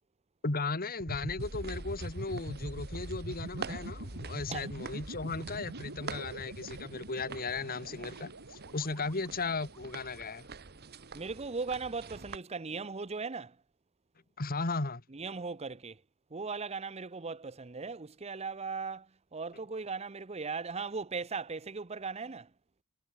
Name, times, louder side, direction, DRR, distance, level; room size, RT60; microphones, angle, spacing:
voice 1, 0.4-10.5 14.4-15.0, left 3 dB, 40° left, 1.7 m, -36 dB
sound 1, 1.0-9.9, right 1 dB, 65° right, 3.1 m, -43 dB
sound 2, 1.4-12.4, right 5 dB, 45° right, 1.3 m, -47 dB
voice 2, 11.1-13.6 15.1-16.0 16.3-22.5, right 4 dB, 30° right, 0.8 m, -38 dB
head